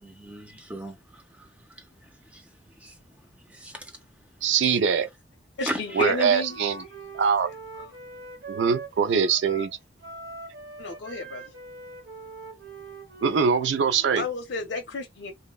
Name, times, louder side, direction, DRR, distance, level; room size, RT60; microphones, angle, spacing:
voice 1, 0.0-1.5 2.3-2.4 2.8-2.9 3.5-3.9 4.6-4.7 5.7-6.1, equal, 10° right, 0.4 m, -36 dB
voice 2, 4.4-5.1 6.0-6.8 7.1-7.5 8.5-9.7 13.2-14.2, right 6 dB, 80° right, 0.4 m, -23 dB
voice 3, 5.6-6.6 7.8-7.9 10.8-11.5 14.1-15.3, left 3 dB, 70° left, 0.5 m, -32 dB
Wind instrument woodwind instrument, 5.8-14.3, right 3 dB, 60° right, 1.0 m, -43 dB
2.7 x 2.0 x 2.2 m
head